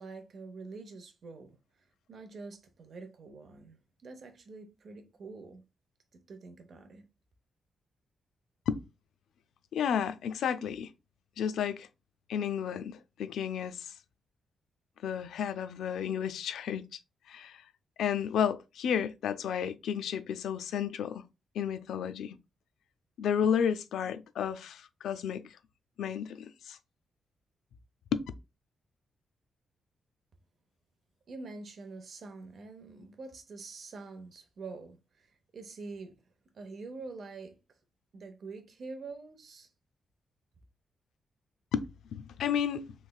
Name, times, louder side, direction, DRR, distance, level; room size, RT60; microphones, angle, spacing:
voice 1, 0.0-1.6 2.1-5.6 6.1-7.0 31.3-36.2 36.5-37.6 38.1-39.7, right 3 dB, 45° right, 0.6 m, -46 dB
voice 2, 9.7-10.9 11.4-11.9 12.3-13.9 15.0-17.0 17.3-17.6 18.0-21.2 21.6-22.4 23.2-25.6 26.0-26.8 28.1-28.2 41.7-42.9, left 8 dB, 90° left, 0.3 m, -32 dB
3.2 x 3.1 x 2.2 m
wide cardioid pair, 175°, 0 cm